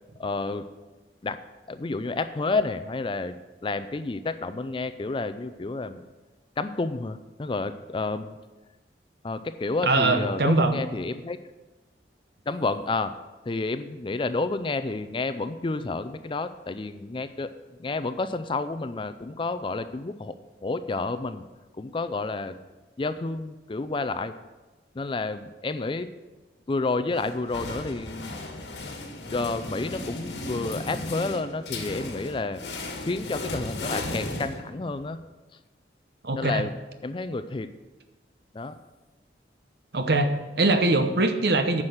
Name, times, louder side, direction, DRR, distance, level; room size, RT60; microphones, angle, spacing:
voice 1, 0.2-0.6 1.2-1.4 1.7-6.0 6.6-8.4 9.2-11.4 12.5-13.1 13.5-17.5 17.8-20.4 20.6-21.4 21.8-22.6 23.0-24.3 24.9-26.1 26.7-28.4 29.3-32.6 33.0-35.2 36.3-36.7 37.0-37.7 38.5-38.8, left 3 dB, 30° left, 12 dB, 0.4 m, -30 dB
voice 2, 9.8-10.8 36.2-36.7 39.9-41.8, right 2 dB, 65° right, 8 dB, 0.9 m, -22 dB
sound 1, 27.1-35.1, left 2 dB, 80° left, 1.5 m, -35 dB
9.7 x 6.2 x 6.5 m, 1.2 s
head